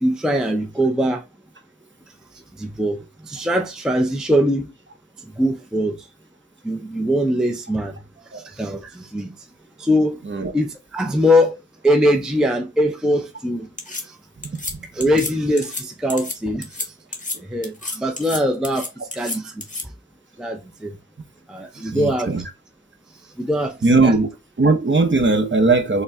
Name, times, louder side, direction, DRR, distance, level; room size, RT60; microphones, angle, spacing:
voice 1, 0.0-1.2 2.6-4.7 5.4-6.1 6.6-8.0 8.3-9.4 9.8-10.2 10.5-11.6 11.8-14.2 14.9-16.9 17.4-19.6 20.4-21.0 21.5-22.4 23.4-23.8 24.0-24.2, equal, ahead, 0.5 m, -22 dB
sound 1, 13.8-14.0 14.4-14.7 15.0-15.3 15.6-15.8 16.1-16.4 16.6-16.9 17.1-17.4 17.6-18.4 18.6-19.8, left 2 dB, 20° left, 1.1 m, -30 dB
voice 2, 14.4-14.8 21.9-22.4 23.8-24.3 24.6-26.0, right 3 dB, 35° right, 0.8 m, -18 dB
4.0 x 2.1 x 3.4 m
cardioid pair, 45°, 35 cm